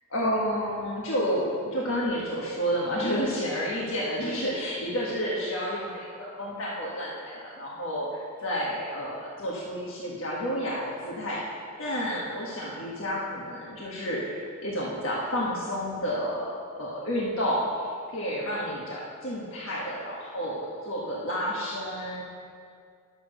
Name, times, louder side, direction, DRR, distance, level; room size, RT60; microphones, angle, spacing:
voice 1, 0.1-22.2, equal, 65° left, -5 dB, 1.5 m, -30 dB
10.0 x 7.0 x 6.5 m, 2.2 s
head